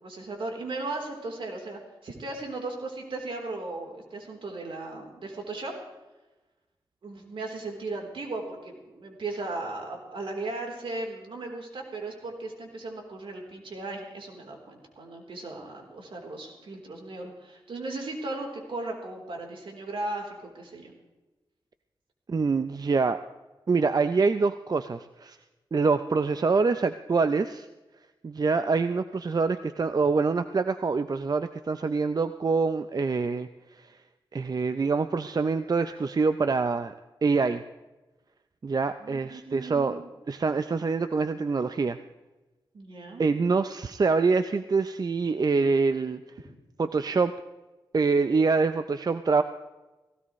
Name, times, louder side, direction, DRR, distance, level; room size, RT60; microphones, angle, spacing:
voice 1, 0.0-5.7 7.0-20.9 39.0-40.1 42.7-43.2, right 2 dB, 75° right, 1 dB, 3.7 m, -37 dB
voice 2, 22.3-23.2 23.7-25.4 25.7-27.7 28.2-33.5 33.8-33.9 34.3-36.9 37.2-37.6 38.6-40.0 40.3-42.0 43.2-46.2 46.8-47.3 47.9-49.4, right 4 dB, 50° right, 10 dB, 0.6 m, -25 dB
18.0 x 17.5 x 3.2 m, 1.1 s
cardioid pair, 60°, 9 cm